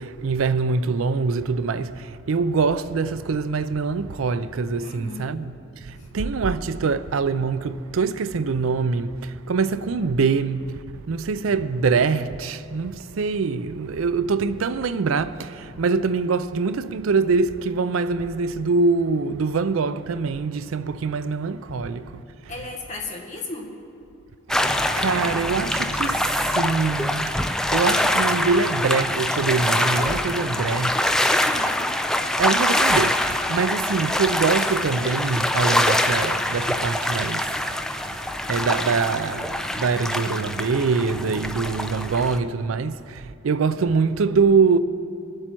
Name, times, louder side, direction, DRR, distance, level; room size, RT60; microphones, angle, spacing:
voice 1, 0.0-5.5 5.8-22.2 25.0-27.3 27.7-31.0 32.4-37.6 38.5-44.8, right 4 dB, 90° right, 0.5 m, -24 dB
voice 2, 4.8-5.4 6.0-6.1 22.5-23.7 31.4-31.9, left 3 dB, 35° left, 1.6 m, -35 dB
sound 1, 24.5-42.4, left 1 dB, 5° left, 0.3 m, -24 dB
22.0 x 7.8 x 4.5 m
head